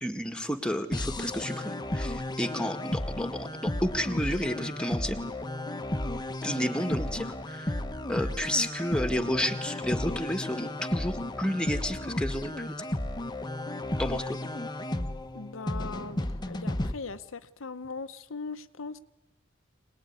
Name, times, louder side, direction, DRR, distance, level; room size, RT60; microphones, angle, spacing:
voice 1, 0.0-5.2 6.4-7.8 8.1-12.8 14.0-14.4, equal, 5° left, 1.8 m, -31 dB
sound 1, 0.9-16.9, left 1 dB, 20° left, 1.0 m, -33 dB
voice 2, 15.3-16.2 16.5-19.0, left 4 dB, 80° left, 0.9 m, -39 dB
24.5 x 19.5 x 9.6 m
head